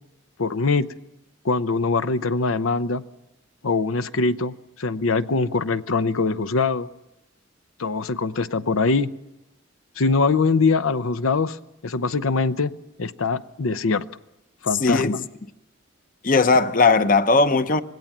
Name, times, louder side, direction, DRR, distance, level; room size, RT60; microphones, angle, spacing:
voice 1, 0.4-0.9 1.4-3.0 3.6-6.9 7.8-9.1 10.0-11.6 11.8-12.7 13.0-14.1 14.6-15.2, left 4 dB, 90° left, 0.7 m, -22 dB
voice 2, 14.8-15.2 16.2-17.8, left 3 dB, 40° left, 0.8 m, -18 dB
26.0 x 19.0 x 7.3 m
head